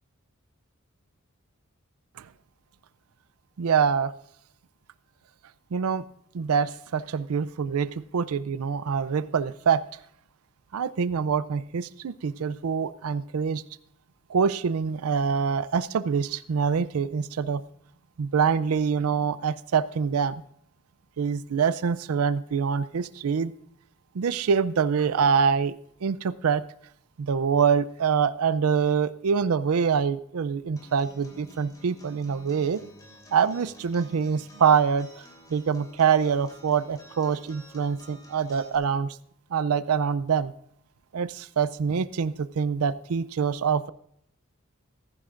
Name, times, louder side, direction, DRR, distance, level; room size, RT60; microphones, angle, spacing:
voice 1, 3.6-4.1 5.7-6.0 6.3-9.8 10.7-13.6 14.3-17.6 18.2-20.4 21.2-23.5 24.1-25.7 26.0-26.6 27.2-32.8 33.3-35.2 35.5-39.2 39.5-40.5 41.1-43.9, right 6 dB, 80° right, 16 dB, 0.4 m, -25 dB
Acoustic guitar, 30.8-38.7, right 1 dB, 15° left, 3.3 m, -51 dB
15.5 x 15.0 x 2.5 m, 0.71 s
head